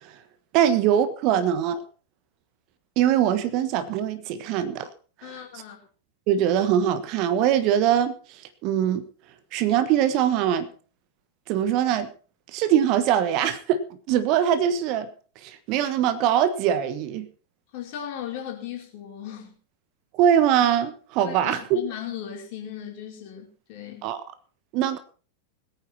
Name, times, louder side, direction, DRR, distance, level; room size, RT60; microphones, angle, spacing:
voice 1, 0.5-1.8 3.0-4.9 5.2-5.3 6.3-9.1 9.5-10.7 11.5-12.1 12.5-15.1 15.4-17.3 20.1-21.8 24.0-24.2 24.7-25.0, right 10 dB, 40° right, 1.3 m, -22 dB
voice 2, 5.2-5.8 17.7-19.6 21.2-24.0, left 10 dB, 45° left, 4.5 m, -37 dB
21.0 x 9.0 x 4.4 m
figure-of-eight pair, 90°, 0 cm